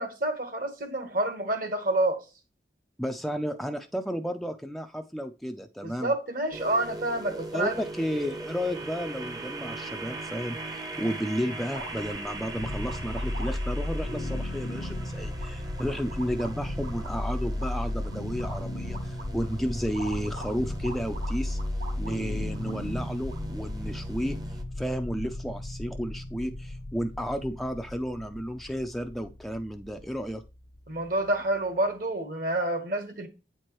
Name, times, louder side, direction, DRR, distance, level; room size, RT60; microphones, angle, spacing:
voice 1, 0.0-2.2 5.8-7.8 30.9-33.3, right 1 dB, 50° right, 1.2 m, -28 dB
voice 2, 3.0-6.1 7.5-21.6 22.0-30.4, equal, ahead, 0.4 m, -32 dB
sound 1, 6.5-24.6, right 2 dB, 20° right, 0.7 m, -41 dB
sound 2, 11.7-23.5, right 1 dB, 75° right, 1.5 m, -44 dB
sound 3, 12.5-31.6, left 1 dB, 75° left, 0.8 m, -35 dB
8.6 x 4.5 x 3.1 m
head